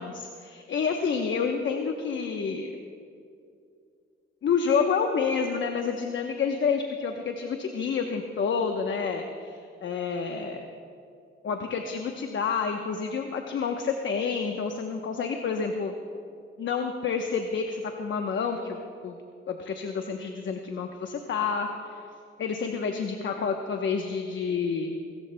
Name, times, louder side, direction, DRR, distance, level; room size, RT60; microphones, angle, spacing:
voice 1, 0.0-2.7 4.4-10.6 11.4-15.9 16.6-18.8 19.0-19.2 19.5-22.0 22.4-25.0, left 5 dB, 65° left, 4 dB, 0.9 m, -29 dB
26.0 x 14.5 x 2.2 m, 2.4 s
cardioid pair, 90°, 21 cm